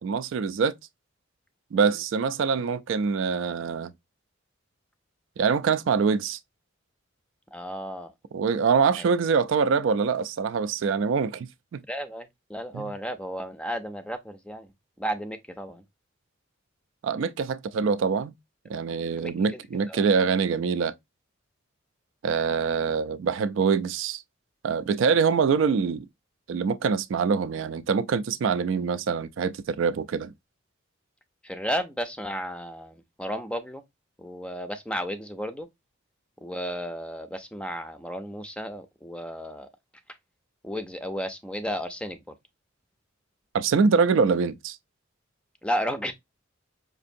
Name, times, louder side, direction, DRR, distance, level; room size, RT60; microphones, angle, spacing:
voice 1, 0.0-0.7 1.7-3.9 5.4-6.4 8.3-11.5 12.7-12.9 17.0-18.3 18.7-20.9 22.2-24.2 24.6-26.1 26.5-30.3 43.5-44.8, right 5 dB, 70° right, 0.3 m, -24 dB
voice 2, 7.5-8.1 9.0-9.1 11.9-14.7 15.0-15.8 19.2-19.6 19.9-20.0 31.4-33.8 34.2-35.7 36.4-39.7 40.6-42.3 45.6-46.1, equal, 5° left, 0.5 m, -33 dB
5.2 x 2.5 x 2.6 m
head